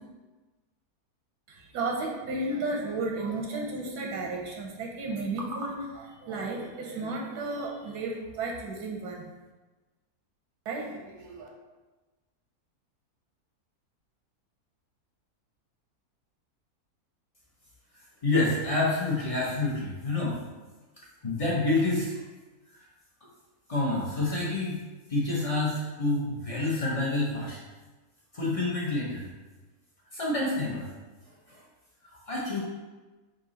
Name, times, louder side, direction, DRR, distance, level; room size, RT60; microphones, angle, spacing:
voice 1, 1.5-9.2 10.6-11.5, right 2 dB, 90° right, -1 dB, 1.3 m, -33 dB
voice 2, 18.2-20.4 21.2-22.2 23.7-24.8 25.1-27.6 28.3-29.3 30.1-30.9 31.5-31.6 32.1-32.6, left 2 dB, 40° left, -6 dB, 0.5 m, -28 dB
3.7 x 2.7 x 3.9 m, 1.2 s
omnidirectional pair, 1.6 m